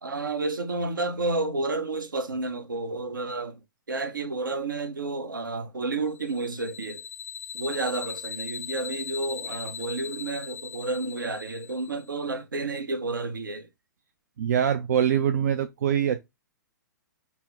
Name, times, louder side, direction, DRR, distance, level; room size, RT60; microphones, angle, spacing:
voice 1, 0.0-3.6 3.9-7.0 7.5-13.7, right 3 dB, 75° right, 0.8 m, -31 dB
sound 1, 6.1-12.1, left 7 dB, 15° left, 0.4 m, -39 dB
voice 2, 14.4-16.2, right 9 dB, 55° right, 0.4 m, -24 dB
4.1 x 2.0 x 3.4 m
figure-of-eight pair, 120°, 11 cm